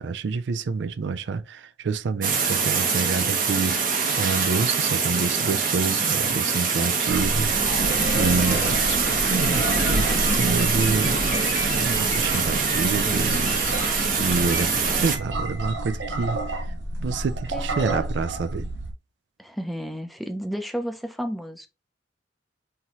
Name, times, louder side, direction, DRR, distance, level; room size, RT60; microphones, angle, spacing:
voice 1, 0.0-3.8 4.2-7.8 8.1-8.7 9.0-11.1 11.8-13.6 14.2-16.4 17.0-18.6, right 4 dB, 70° right, 0.4 m, -27 dB
sound 1, 2.2-15.2, right 5 dB, 50° right, 1.0 m, -24 dB
sound 2, 7.1-18.9, right 1 dB, 85° right, 0.9 m, -30 dB
sound 3, 7.9-14.6, left 4 dB, 70° left, 1.0 m, -35 dB
voice 2, 17.5-18.1 19.4-21.7, equal, ahead, 0.5 m, -33 dB
5.7 x 2.7 x 3.0 m
head